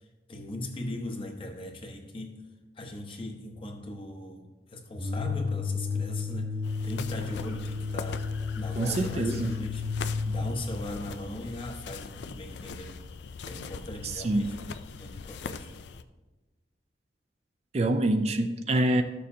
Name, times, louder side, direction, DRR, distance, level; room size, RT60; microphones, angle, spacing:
voice 1, 0.3-2.5 2.8-6.6 6.8-8.3 8.5-9.8 10.2-13.0 13.4-14.6 15.0-15.8, left 1 dB, 30° left, 1.0 m, -39 dB
sound 1, 4.9-10.6, left 4 dB, 55° right, 1.1 m, -32 dB
sound 2, 6.6-16.0, left 5 dB, 75° left, 0.4 m, -41 dB
voice 2, 8.8-9.6 14.0-14.5 17.7-19.0, right 1 dB, 35° right, 0.4 m, -26 dB
14.0 x 6.6 x 2.7 m
head